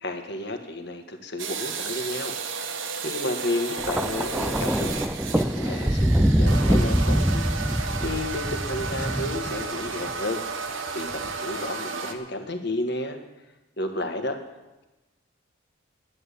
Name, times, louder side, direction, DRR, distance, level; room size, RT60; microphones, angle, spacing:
voice 1, 0.0-2.3 2.6-2.7 3.0-4.9 5.3-6.1 6.4-10.4 10.9-13.2 13.8-14.4, left 2 dB, 50° left, 6 dB, 1.5 m, -32 dB
sound 1, 1.4-12.1, right 5 dB, 65° right, 1.2 m, -33 dB
Thunder, 3.8-10.1 11.1-11.4, equal, 5° right, 0.4 m, -24 dB
11.5 x 9.8 x 8.4 m, 1.1 s
head